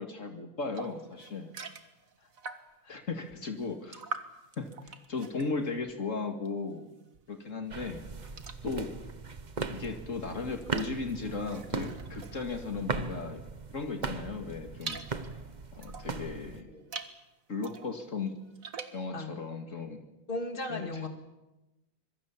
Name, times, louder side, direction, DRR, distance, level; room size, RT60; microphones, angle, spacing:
voice 1, 0.0-1.5 2.9-4.0 4.6-6.9 7.3-8.0 8.6-8.9 9.7-13.4 13.7-15.0 15.7-16.7 17.5-18.3 18.9-20.0 20.7-21.0, left 4 dB, 70° left, 5 dB, 2.5 m, -36 dB
sound 1, 0.8-2.9 3.3-6.7 7.0-13.3 13.8-16.2 16.7-17.2 17.6-19.1, right 4 dB, 80° right, 2.1 m, -45 dB
sound 2, 7.7-16.6, right 4 dB, 35° right, 1.3 m, -39 dB
voice 2, 16.5-17.0 19.1-19.3 20.3-21.1, left 2 dB, 40° left, 6 dB, 2.6 m, -37 dB
25.5 x 23.0 x 7.4 m, 0.98 s
omnidirectional pair, 1.4 m